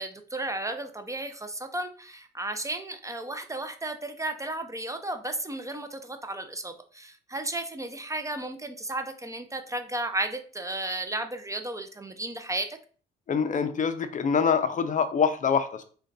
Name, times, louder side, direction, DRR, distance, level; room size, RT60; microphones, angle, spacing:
voice 1, 0.0-12.8, right 2 dB, 15° right, 7 dB, 0.5 m, -34 dB
voice 2, 13.3-15.8, left 6 dB, 40° left, 9 dB, 0.4 m, -25 dB
3.7 x 2.2 x 3.9 m, 0.41 s
cardioid pair, 90°, 20 cm